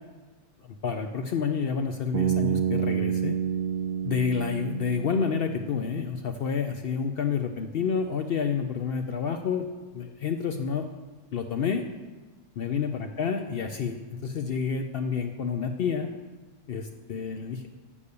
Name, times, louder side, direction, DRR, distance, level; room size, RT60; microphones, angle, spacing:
voice 1, 0.8-3.4 4.0-9.7 9.9-10.9 11.3-11.8 12.6-16.1 16.7-17.7, left 6 dB, 75° left, 6 dB, 0.5 m, -29 dB
Bass guitar, 2.1-6.1, right 8 dB, 70° right, 1.2 m, -29 dB
7.1 x 6.7 x 6.8 m, 1.3 s
omnidirectional pair, 1.6 m